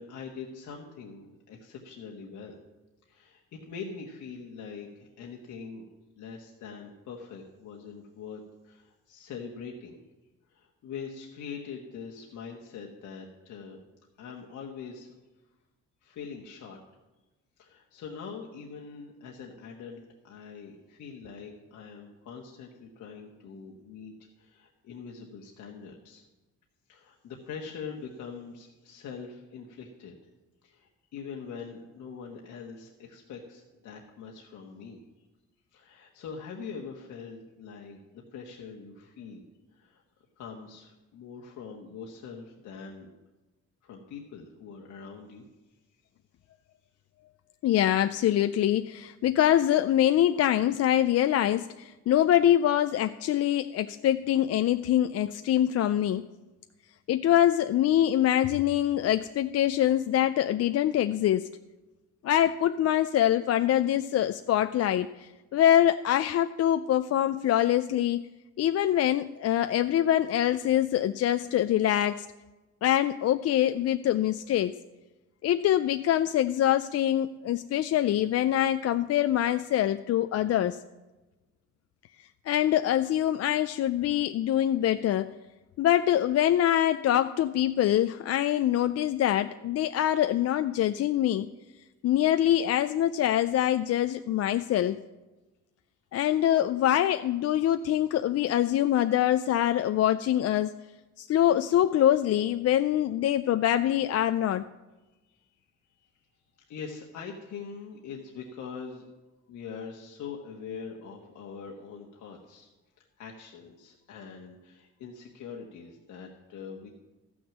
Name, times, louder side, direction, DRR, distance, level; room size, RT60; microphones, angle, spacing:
voice 1, 0.0-2.6 3.1-5.9 6.2-10.0 10.5-13.8 14.2-15.2 16.0-16.8 17.6-26.2 26.9-30.2 30.6-35.0 35.7-39.4 39.7-40.0 40.4-43.1 43.8-45.4 105.3-105.4 106.7-109.1 109.5-112.7 113.0-116.9, left 5 dB, 75° left, 0 dB, 1.3 m, -43 dB
voice 2, 47.6-56.2 57.1-61.5 62.2-68.3 68.6-72.3 72.8-74.7 75.4-80.8 82.5-85.3 85.8-91.5 92.0-95.0 96.1-100.7 101.2-104.7, left 11 dB, 55° left, 10 dB, 0.4 m, -24 dB
13.0 x 6.2 x 7.3 m, 1.1 s
cardioid pair, 90°, 30 cm